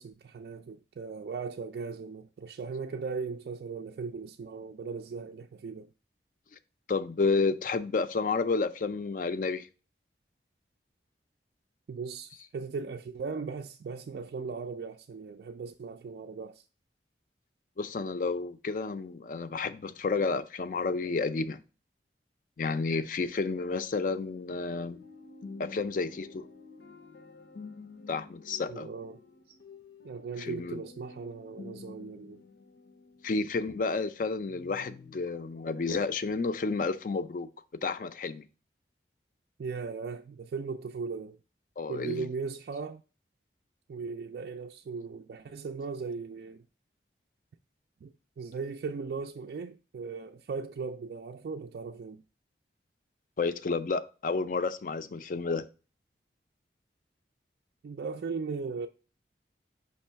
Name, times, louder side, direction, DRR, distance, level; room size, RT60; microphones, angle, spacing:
voice 1, 0.0-5.9 11.9-16.6 28.7-29.2 29.5-29.6 30.0-32.4 39.6-41.4 41.9-43.0 43.9-46.6 48.0-52.2 57.8-58.9, right 5 dB, 60° right, 0.3 m, -38 dB
voice 2, 6.9-9.7 12.4-12.5 17.8-21.6 22.6-25.0 25.6-26.5 28.1-28.9 30.4-30.8 33.2-37.5 37.8-38.4 41.8-42.3 53.4-55.6, left 4 dB, 45° left, 0.4 m, -31 dB
sound 1, 24.1-34.1 34.5-35.2, left 4 dB, 80° left, 0.7 m, -50 dB
5.3 x 3.2 x 5.5 m
head